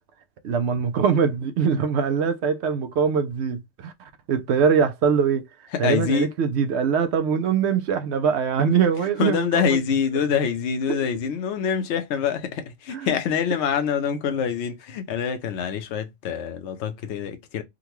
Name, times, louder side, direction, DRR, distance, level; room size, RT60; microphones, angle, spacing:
voice 1, 0.4-3.9 4.3-5.5 5.8-9.8 12.9-13.1, right 6 dB, 65° right, 0.8 m, -22 dB
voice 2, 5.8-6.3 9.2-17.6, left 7 dB, 65° left, 0.9 m, -25 dB
3.7 x 2.2 x 2.9 m
omnidirectional pair, 1.3 m